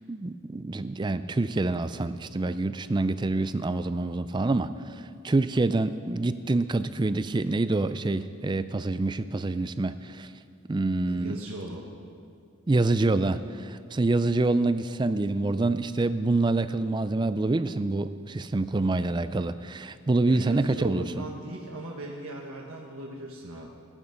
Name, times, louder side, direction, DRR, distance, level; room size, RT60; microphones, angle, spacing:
voice 1, 0.0-10.3 10.7-11.3 12.7-21.3, right 2 dB, 20° right, 12 dB, 0.3 m, -26 dB
voice 2, 11.1-11.9 20.2-23.7, right 1 dB, 85° right, -1 dB, 1.3 m, -39 dB
17.0 x 11.0 x 5.2 m, 2.4 s
head